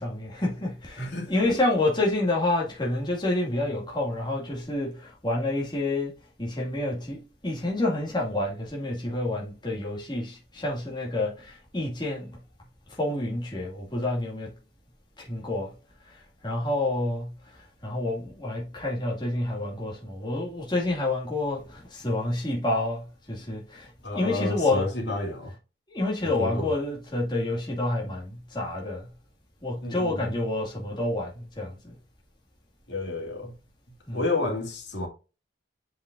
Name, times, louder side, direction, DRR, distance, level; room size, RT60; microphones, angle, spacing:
voice 1, 0.0-6.1 6.4-12.4 13.0-14.5 15.2-15.7 16.4-17.3 17.8-23.9 24.1-24.9 25.9-29.1 29.6-31.9 34.1-34.2, left 2 dB, 25° left, 2.1 m, -28 dB
voice 2, 1.0-1.6 24.0-25.5 26.2-26.7 29.8-30.4 32.9-33.5 34.1-35.1, left 2 dB, 75° left, 2.7 m, -31 dB
7.4 x 5.5 x 2.5 m
head